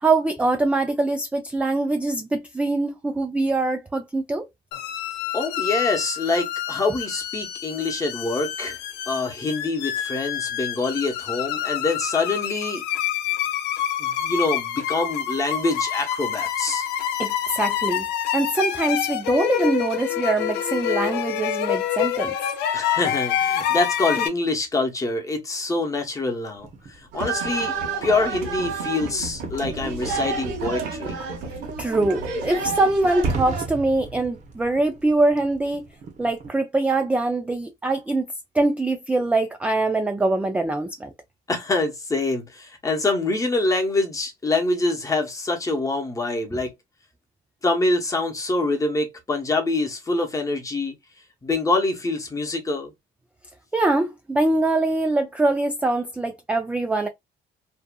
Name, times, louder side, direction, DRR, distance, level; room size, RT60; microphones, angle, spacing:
voice 1, 0.0-4.5 17.2-18.0 18.3-22.3 31.8-35.9 36.2-38.3 38.5-41.1 53.7-57.1, right 2 dB, 10° right, 0.3 m, -23 dB
sound 1, 4.7-24.3, left 10 dB, 90° left, 0.5 m, -27 dB
voice 2, 5.3-8.8 9.1-12.8 14.0-16.9 22.7-31.2 41.5-46.7 47.6-50.9 51.4-52.9, left 2 dB, 20° left, 0.9 m, -25 dB
sound 2, 26.6-36.5, right 3 dB, 45° right, 0.8 m, -37 dB
sound 3, 27.1-33.6, right 4 dB, 90° right, 1.0 m, -30 dB
2.7 x 2.4 x 2.2 m
cardioid pair, 110°, 17 cm